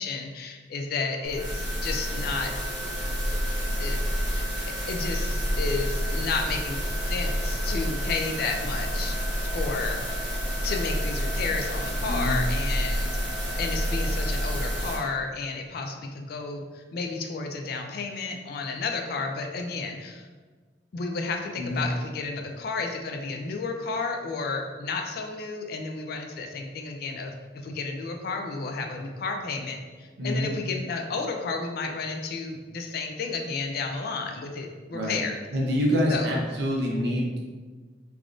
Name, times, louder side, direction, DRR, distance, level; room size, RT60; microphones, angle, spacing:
voice 1, 0.0-2.5 3.3-3.4 3.8-4.0 4.3-4.5 4.9-9.2 9.5-10.0 10.6-13.1 13.6-20.3 20.9-35.4 36.1-36.3, left 4 dB, 60° left, 3 dB, 0.3 m, -32 dB
sound 1, 1.2-15.0, equal, 25° right, 1.0 m, -28 dB
voice 2, 12.1-12.4 21.6-21.9 30.2-30.5 34.9-35.2 35.5-37.4, equal, 70° right, -2 dB, 0.7 m, -26 dB
3.4 x 2.5 x 2.4 m, 1.4 s
head